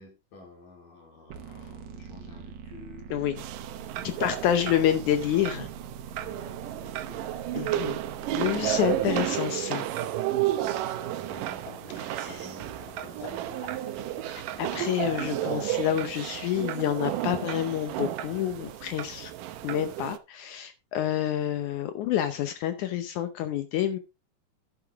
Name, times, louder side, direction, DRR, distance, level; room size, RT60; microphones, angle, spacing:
voice 1, 0.0-3.3 4.0-4.6 6.1-7.4 8.0-9.2 10.6-13.9, left 2 dB, 90° left, 5.5 m, -51 dB
sound 1, 1.3-9.3, right 6 dB, 65° right, 2.5 m, -43 dB
voice 2, 3.1-3.4 4.0-5.7 7.6-8.0 8.3-9.9 12.1-12.5 14.3-19.3 19.6-24.0, left 11 dB, 75° left, 2.2 m, -28 dB
sound 2, 3.4-20.2, right 13 dB, 90° right, 2.4 m, -32 dB
sound 3, 10.9-20.0, left 2 dB, 25° left, 3.3 m, -49 dB
11.0 x 8.9 x 3.5 m
omnidirectional pair, 3.7 m